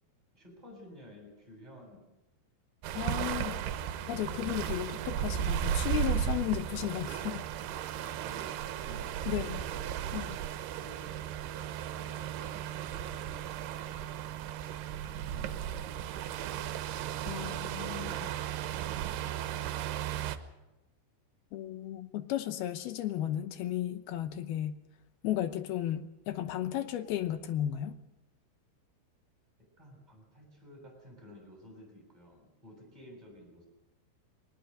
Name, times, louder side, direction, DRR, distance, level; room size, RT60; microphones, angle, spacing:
voice 1, 0.3-2.1 2.9-3.8 8.0-10.0 10.8-11.3 11.9-13.1 13.6-14.2 15.0-16.8 17.3-18.3 19.0-20.7 29.8-33.6, left 1 dB, 10° right, 1 dB, 7.0 m, -54 dB
sound 1, 2.8-20.4, right 10 dB, 85° right, 3.0 m, -35 dB
voice 2, 3.0-3.6 4.1-7.5 9.3-9.6 10.1-10.4 17.3-18.2 21.5-24.8 25.2-28.0, left 12 dB, 75° left, 10 dB, 2.8 m, -34 dB
21.0 x 19.5 x 6.6 m, 0.95 s
omnidirectional pair, 4.6 m